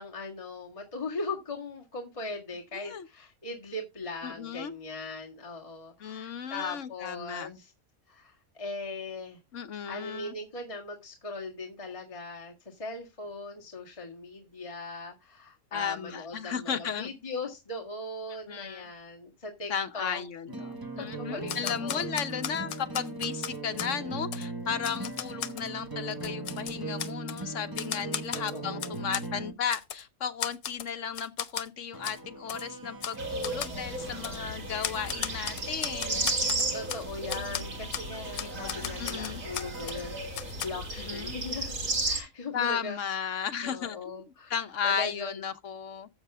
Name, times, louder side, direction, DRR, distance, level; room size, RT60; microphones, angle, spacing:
voice 1, 0.0-7.7 8.1-9.4 9.9-20.2 21.0-22.0 28.3-29.1 36.7-41.8 42.0-43.0 43.2-43.3 43.6-44.5 44.8-45.4, left 3 dB, 25° left, 1.9 m, -39 dB
voice 2, 2.7-3.1 4.2-4.8 6.0-7.6 9.5-10.3 15.7-17.1 18.5-18.9 19.7-36.3 38.3-39.4 41.0-41.4 42.5-44.1 44.5-46.1, left 7 dB, 65° left, 1.2 m, -35 dB
sound 1, 20.5-29.5 31.9-40.2, right 3 dB, 15° right, 1.1 m, -40 dB
Typewriter, 21.5-23.9 24.3-24.5 24.8-25.7 26.1-27.4 27.8-29.3 29.7-30.0 30.4-30.9 31.2-31.7 32.0-32.2 32.5-32.6 33.0-33.2 33.4-33.8 34.2-34.4 34.8-37.0 37.3-37.6 37.9-38.1 38.4-40.0 40.3-40.7, left 9 dB, 90° left, 1.3 m, -36 dB
sound 2, 33.2-42.2, right 2 dB, 70° right, 2.8 m, -34 dB
12.5 x 7.6 x 3.5 m
omnidirectional pair, 1.5 m